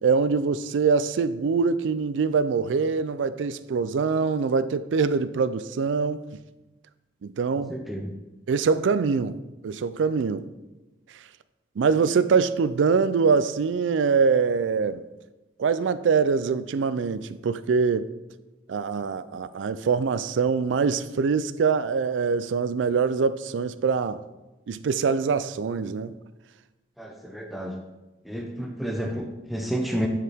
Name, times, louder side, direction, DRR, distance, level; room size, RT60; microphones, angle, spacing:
voice 1, 0.0-6.3 7.2-7.7 8.5-9.4 9.6-10.5 11.8-15.0 15.6-18.1 18.7-24.2 24.7-26.1, right 5 dB, 90° right, 0.4 m, -24 dB
voice 2, 7.5-8.1 27.0-27.8 28.2-30.1, equal, ahead, 0.5 m, -31 dB
9.8 x 4.7 x 3.5 m
head